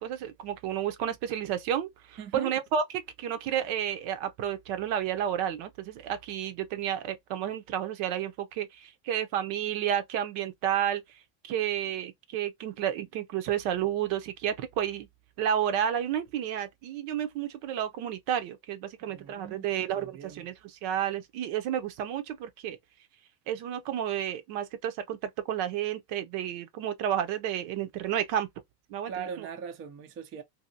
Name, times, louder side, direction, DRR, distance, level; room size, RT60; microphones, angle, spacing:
voice 1, 0.0-11.0 11.4-15.1 15.4-22.8 23.5-28.5 28.9-29.1 29.4-29.5, right 10 dB, 70° right, 0.7 m, -31 dB
voice 2, 2.2-2.5 19.0-20.5 29.1-30.4, right 7 dB, 25° right, 0.4 m, -41 dB
2.8 x 2.7 x 2.6 m
cardioid pair, 150°, 49 cm